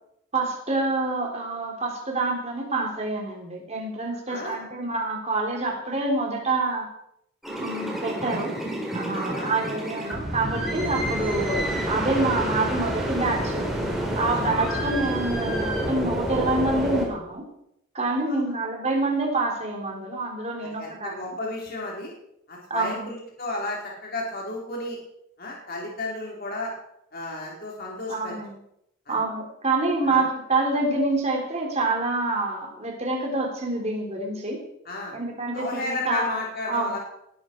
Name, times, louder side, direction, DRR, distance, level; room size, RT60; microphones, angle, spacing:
voice 1, 0.3-6.9 7.6-8.5 8.9-13.7 14.1-17.5 17.9-21.2 22.7-23.1 28.1-28.6 29.1-34.6 35.1-36.4 36.7-37.0, right 2 dB, 30° right, 1 dB, 3.9 m, -27 dB
voice 2, 4.3-4.6 9.1-9.6 14.3-14.4 18.3-18.5 20.8-22.1 22.5-25.0 25.4-26.7 27.1-28.4 29.1-29.2 30.0-30.2 34.8-35.2 35.5-37.0, left 2 dB, 45° left, -2 dB, 4.4 m, -33 dB
sound 1, 7.4-17.1, equal, ahead, 4.4 m, -28 dB
19.5 x 12.5 x 4.8 m, 0.80 s
head